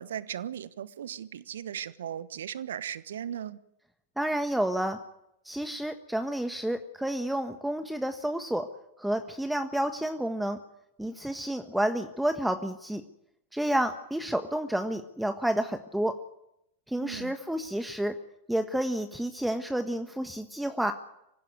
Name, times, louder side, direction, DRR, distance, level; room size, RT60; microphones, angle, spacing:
voice 1, 0.0-3.6 17.0-17.3, right 9 dB, 70° right, 16 dB, 1.1 m, -37 dB
voice 2, 4.2-5.0 5.4-8.7 9.0-10.6 11.0-13.0 13.5-16.1 16.9-18.1 18.5-20.9, right 1 dB, 5° right, 7 dB, 1.4 m, -30 dB
25.0 x 16.0 x 9.4 m, 0.82 s
figure-of-eight pair, 90°, 0 cm